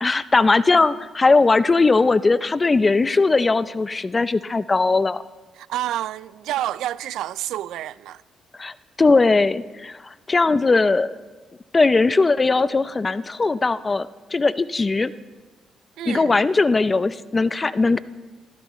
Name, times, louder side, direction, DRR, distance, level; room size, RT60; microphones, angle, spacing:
voice 1, 0.0-5.2 8.6-11.2 11.7-15.1 16.1-18.0, left 3 dB, 25° left, 0.5 m, -19 dB
voice 2, 5.6-8.2 16.0-16.4, right 13 dB, 85° right, 0.4 m, -29 dB
23.0 x 14.5 x 3.1 m
cardioid pair, 90°, 0 cm